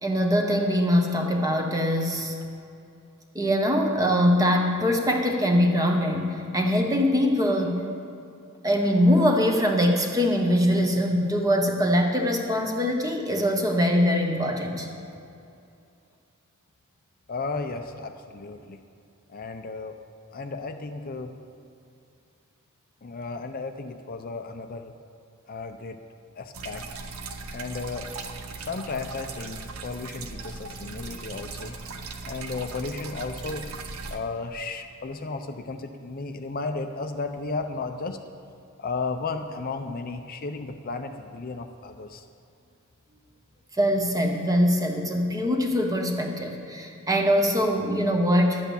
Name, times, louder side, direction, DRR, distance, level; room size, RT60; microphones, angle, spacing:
voice 1, 0.0-2.3 3.3-7.8 8.6-14.9 43.8-48.6, equal, 15° right, 2 dB, 1.1 m, -23 dB
voice 2, 17.3-18.8 19.3-20.0 20.3-21.3 23.0-24.9 25.5-26.0 26.4-26.8 27.5-28.1 28.6-31.8 32.2-33.6 34.1-38.2 38.8-42.2, left 3 dB, 40° left, 6 dB, 0.5 m, -34 dB
sound 1, 26.5-34.2, right 3 dB, 75° right, 0.8 m, -38 dB
11.5 x 8.2 x 7.0 m, 2.6 s
head